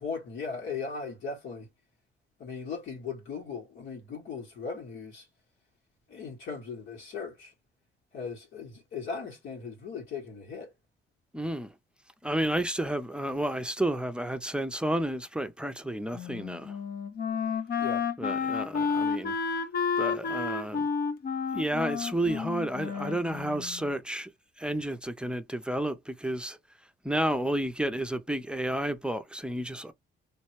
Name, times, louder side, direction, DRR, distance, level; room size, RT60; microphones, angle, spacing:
voice 1, 0.0-1.7 2.4-5.3 6.1-7.5 8.1-10.7 17.8-18.1, left 5 dB, 80° left, 2.0 m, -38 dB
voice 2, 11.3-11.7 12.2-16.8 18.2-19.6 20.0-20.8 21.5-24.3 24.6-26.6 27.0-29.9, right 1 dB, 5° right, 0.6 m, -31 dB
Wind instrument woodwind instrument, 16.1-23.9, left 5 dB, 50° left, 0.8 m, -31 dB
3.2 x 3.1 x 3.1 m
cardioid pair, 90°, 20 cm